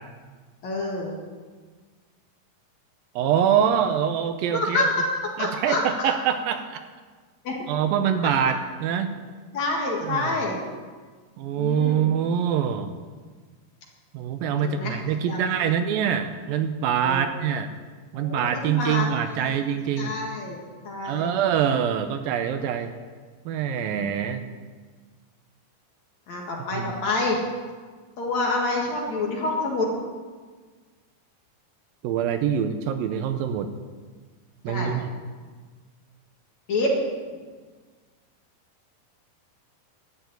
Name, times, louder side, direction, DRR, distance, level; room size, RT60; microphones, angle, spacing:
voice 1, 0.6-1.1 4.5-5.0 5.4-6.1 7.4-7.5 9.5-10.6 11.5-12.1 14.8-15.0 15.3-15.6 17.0-17.2 18.1-19.6 20.0-20.6 20.8-21.4 23.9-24.1 26.3-27.4 28.2-29.9 34.7-35.0 36.7-37.0, left 2 dB, 55° left, -1 dB, 2.8 m, -27 dB
voice 2, 3.2-4.9 5.4-6.8 7.7-9.1 10.0-10.3 11.4-12.9 14.1-17.7 18.1-20.1 21.0-22.9 23.5-24.4 26.7-26.9 32.0-33.7 34.6-35.0, right 8 dB, 80° right, 8 dB, 2.3 m, -24 dB
12.5 x 7.0 x 9.1 m, 1.5 s
omnidirectional pair, 4.4 m